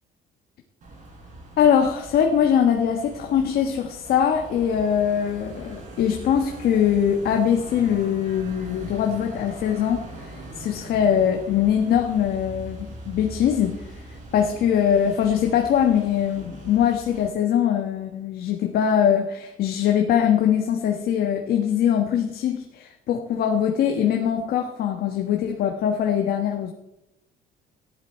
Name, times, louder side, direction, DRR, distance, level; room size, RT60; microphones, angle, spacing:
sound 1, 0.8-17.3, right 1 dB, 50° right, 5.0 m, -41 dB
voice 1, 1.6-13.7 14.3-26.7, left 8 dB, 70° left, 4 dB, 1.3 m, -22 dB
14.0 x 11.0 x 4.4 m, 0.91 s
cardioid pair, 110°, 17 cm